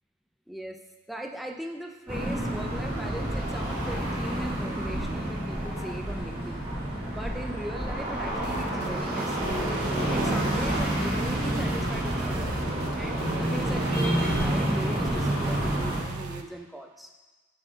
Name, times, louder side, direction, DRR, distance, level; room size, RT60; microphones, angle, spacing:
voice 1, 0.5-0.8 1.1-6.6 7.1-9.5 10.1-12.5 13.0-17.1, equal, ahead, 2 dB, 0.3 m, -39 dB
sound 1, 2.1-16.0, right 1 dB, 25° right, 1.9 m, -28 dB
sound 2, 8.4-8.9 9.2-10.9 11.2-16.4, right 4 dB, 80° right, 0.4 m, -40 dB
8.0 x 4.2 x 3.8 m, 1.3 s
head